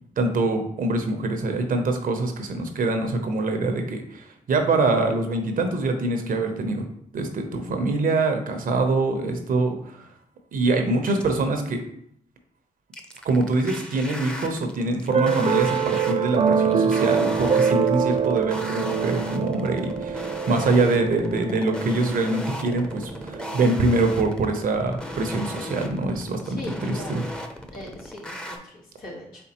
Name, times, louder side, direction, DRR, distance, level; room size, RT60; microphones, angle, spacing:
voice 1, 0.2-6.8 7.1-10.0 10.5-11.8 13.2-27.2, right 2 dB, 70° right, 5 dB, 0.8 m, -24 dB
sound 1, 11.0-11.5 12.9-28.6, equal, 5° left, 0.7 m, -36 dB
sound 2, 15.1-24.3, right 6 dB, 45° right, 0.4 m, -25 dB
voice 2, 26.4-27.3 27.7-29.5, left 1 dB, 80° left, -4 dB, 1.4 m, -40 dB
4.3 x 3.5 x 2.9 m, 0.68 s
supercardioid pair, 45°, 15 cm